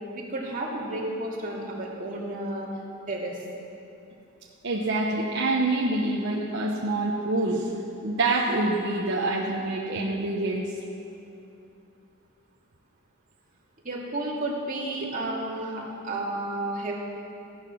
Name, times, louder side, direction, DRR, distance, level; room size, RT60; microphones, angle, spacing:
voice 1, 0.1-2.7 3.1-3.4 13.8-17.0, right 2 dB, 40° right, -4 dB, 2.5 m, -32 dB
voice 2, 4.6-7.7 8.0-10.7, right 2 dB, 60° right, -2 dB, 1.0 m, -26 dB
15.5 x 11.5 x 6.3 m, 2.8 s
head